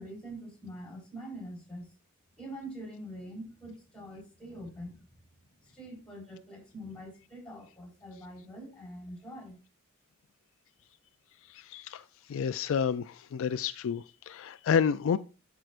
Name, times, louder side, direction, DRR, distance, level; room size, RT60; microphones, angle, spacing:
voice 1, 0.0-1.9 2.4-5.0 5.6-9.6, right 1 dB, 5° left, 3.9 m, -44 dB
voice 2, 11.5-15.2, left 7 dB, 65° left, 0.3 m, -30 dB
12.0 x 4.6 x 2.5 m
head